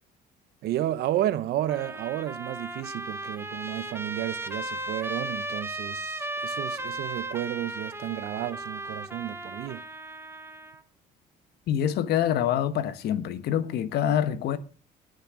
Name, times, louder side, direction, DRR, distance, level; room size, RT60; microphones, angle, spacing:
voice 1, 0.6-9.8, right 12 dB, 70° right, 0.9 m, -32 dB
Trumpet, 1.7-10.8, right 2 dB, 15° right, 1.1 m, -36 dB
voice 2, 11.7-14.6, left 10 dB, 70° left, 1.2 m, -26 dB
18.5 x 6.6 x 6.3 m
cardioid pair, 110°, 17 cm